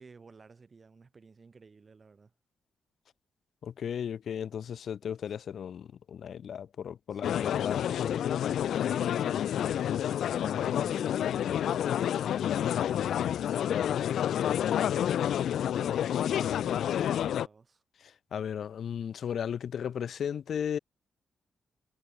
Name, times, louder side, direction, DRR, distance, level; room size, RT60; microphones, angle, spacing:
voice 1, 0.0-2.3 5.3-5.4 7.1-7.6 8.9-9.8 10.3-11.8 14.9-17.8, right 4 dB, 30° right, 6.4 m, -54 dB
voice 2, 3.6-9.0 13.7-15.1 18.0-20.8, left 8 dB, 55° left, 1.9 m, -36 dB
sound 1, 7.2-17.5, left 10 dB, 75° left, 0.6 m, -29 dB
wide cardioid pair, 160°, 0 cm